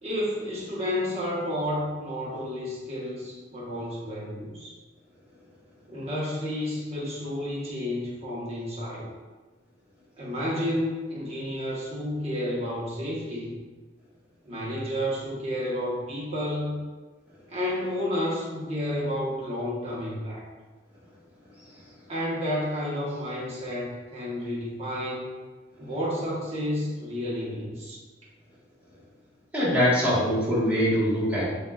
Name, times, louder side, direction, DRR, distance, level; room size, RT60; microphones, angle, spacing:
voice 1, 0.0-4.7 5.9-9.1 10.2-13.6 14.4-16.8 17.5-20.4 22.1-25.3 25.8-28.0, left 1 dB, 35° right, -6 dB, 1.2 m, -31 dB
voice 2, 29.5-31.4, equal, 10° right, -9 dB, 1.5 m, -23 dB
7.1 x 2.8 x 2.4 m, 1.3 s
head